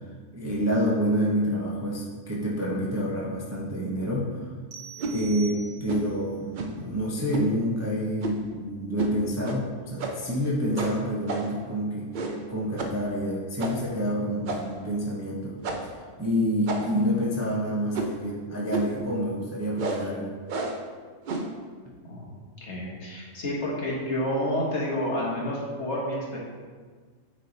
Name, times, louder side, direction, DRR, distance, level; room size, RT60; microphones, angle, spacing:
voice 1, 0.3-4.5 5.1-12.1 12.5-20.4 21.8-21.9, equal, 15° right, -5 dB, 0.6 m, -28 dB
sound 1, 4.7-6.2, right 7 dB, 90° right, 1.2 m, -44 dB
sound 2, 5.0-5.2 5.9-6.1 6.5-6.8 7.3-7.5 8.2-8.5 9.0-9.2 9.4-9.6 10.0-10.3 10.8-11.6 12.1-12.5 12.8-13.0 13.6-13.9 14.4-14.8 15.6-16.0 16.7-17.1 17.9-18.2 18.7-19.0 19.8-20.1 20.5-20.9 21.3-21.6, right 2 dB, 55° right, 0.5 m, -32 dB
voice 2, 22.6-26.4, left 1 dB, 55° left, -4 dB, 1.6 m, -29 dB
9.3 x 3.3 x 4.0 m, 1.5 s
omnidirectional pair, 1.5 m